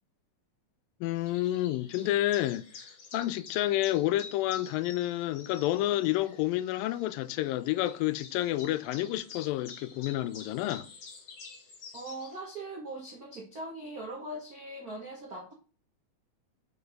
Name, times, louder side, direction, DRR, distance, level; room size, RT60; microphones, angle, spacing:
voice 1, 1.0-2.6 3.1-10.9, left 15 dB, 85° left, 2.3 m, -29 dB
sound 1, 1.2-12.4, left 5 dB, 55° left, 1.2 m, -50 dB
voice 2, 11.9-15.5, right 1 dB, 80° right, 0.8 m, -40 dB
6.5 x 4.7 x 5.0 m
omnidirectional pair, 4.0 m